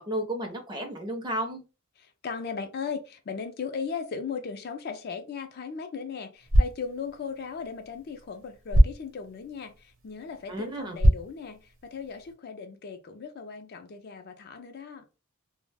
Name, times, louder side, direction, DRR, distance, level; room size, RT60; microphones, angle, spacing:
voice 1, 0.0-1.6 10.5-11.0, right 1 dB, 20° right, 3 dB, 0.5 m, -32 dB
voice 2, 2.0-15.0, left 5 dB, 45° left, 6 dB, 0.4 m, -37 dB
sound 1, 6.3-12.3, equal, 60° right, 0.8 m, -27 dB
2.3 x 2.0 x 3.3 m, 0.30 s
head